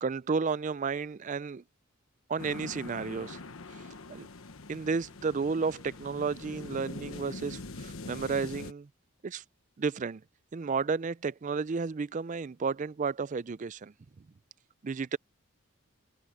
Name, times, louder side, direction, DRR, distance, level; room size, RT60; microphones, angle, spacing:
voice 1, 0.0-1.6 2.3-3.4 4.1-4.3 4.7-8.9 9.2-9.4 9.8-10.2 10.5-13.9 14.8-15.2, right 5 dB, 35° right, 0.4 m, -32 dB
sound 1, 2.4-8.7, left 3 dB, 70° left, 1.2 m, -43 dB
head